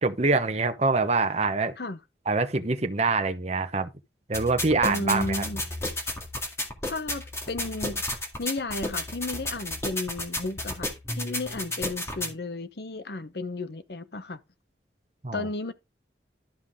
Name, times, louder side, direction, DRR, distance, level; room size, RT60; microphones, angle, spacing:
voice 1, 0.0-1.8 2.3-3.9 4.3-5.4 15.2-15.5, right 3 dB, 40° right, 1.0 m, -25 dB
sound 1, 4.3-12.3, left 1 dB, 15° left, 2.0 m, -32 dB
voice 2, 4.8-5.6 6.9-8.0 8.4-10.9 11.2-14.4 15.3-15.7, left 2 dB, 60° left, 0.9 m, -33 dB
12.0 x 5.8 x 3.6 m
head